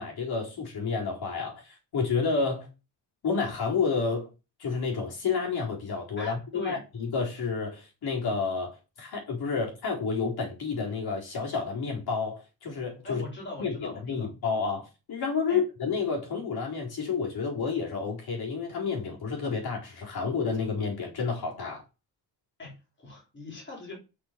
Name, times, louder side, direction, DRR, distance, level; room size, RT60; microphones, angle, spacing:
voice 1, 0.0-2.7 3.2-4.3 4.6-13.2 13.6-21.8, left 5 dB, 65° left, 4.4 m, -30 dB
voice 2, 6.2-6.8 13.0-14.3 15.5-15.6 22.6-24.0, left 2 dB, 25° left, 4.3 m, -41 dB
8.3 x 6.3 x 6.0 m
wide cardioid pair, 175°, 41 cm